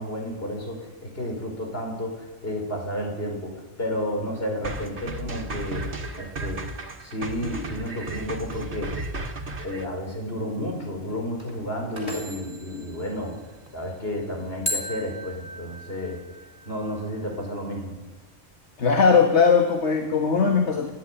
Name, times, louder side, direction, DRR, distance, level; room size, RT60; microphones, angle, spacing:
voice 1, 0.0-5.9 6.2-8.9 9.6-13.4 13.7-16.2 16.7-18.0, equal, 60° left, 1 dB, 5.5 m, -31 dB
sound 1, 4.6-9.9, right 2 dB, 75° right, 2.1 m, -34 dB
sound 2, 7.9-14.9, equal, 40° right, 6.0 m, -44 dB
sound 3, 14.7-17.6, left 1 dB, 45° left, 3.5 m, -37 dB
voice 2, 18.8-20.9, left 5 dB, 85° left, 3 dB, 2.0 m, -19 dB
29.5 x 12.0 x 10.0 m, 1.2 s
omnidirectional pair, 1.1 m